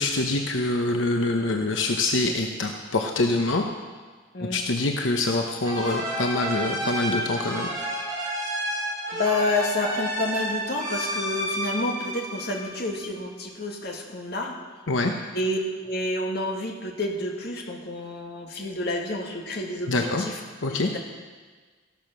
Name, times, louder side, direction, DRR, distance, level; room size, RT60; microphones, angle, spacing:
voice 1, 0.0-3.7 4.4-7.7 14.9-15.1 19.9-20.2 20.6-20.9, left 2 dB, 75° left, 3 dB, 1.0 m, -25 dB
sound 1, 5.6-13.1, right 1 dB, 20° right, 5.9 m, -30 dB
voice 2, 9.1-14.6 15.3-20.4 20.7-21.0, left 2 dB, 55° left, 1 dB, 2.0 m, -29 dB
14.5 x 12.0 x 6.1 m, 1.4 s
head